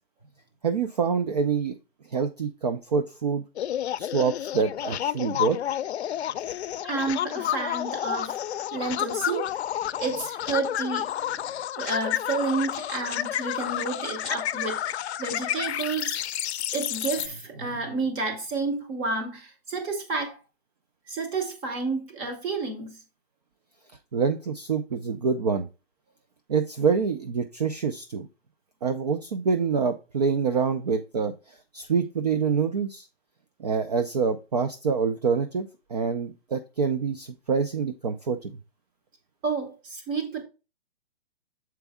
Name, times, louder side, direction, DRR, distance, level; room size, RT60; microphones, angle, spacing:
voice 1, 0.6-1.8 2.1-3.4 4.0-5.6 24.1-25.7 26.5-28.3 28.8-31.3 31.7-33.1 33.6-38.5, right 5 dB, 40° right, 0.4 m, -26 dB
sound 1, 3.6-17.3, left 11 dB, 85° left, 0.5 m, -30 dB
voice 2, 6.8-8.4 8.7-9.5 10.0-11.4 11.8-16.2 16.7-20.4 21.1-23.0 39.4-40.4, right 3 dB, 15° right, 0.7 m, -30 dB
7.0 x 4.5 x 3.4 m
hypercardioid pair, 165°, 32 cm